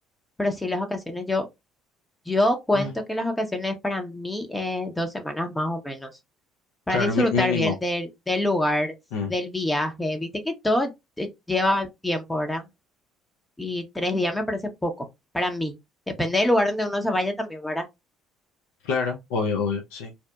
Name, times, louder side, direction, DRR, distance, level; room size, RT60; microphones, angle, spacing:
voice 1, 0.4-1.4 2.3-6.1 6.9-8.9 9.3-10.9 11.2-12.7 13.6-15.1 15.3-15.7 16.1-17.9, left 1 dB, 10° left, 0.6 m, -26 dB
voice 2, 6.9-7.7 9.1-9.3 18.8-20.1, left 5 dB, 75° left, 0.4 m, -26 dB
2.7 x 2.1 x 2.2 m
hypercardioid pair, 60°, 0 cm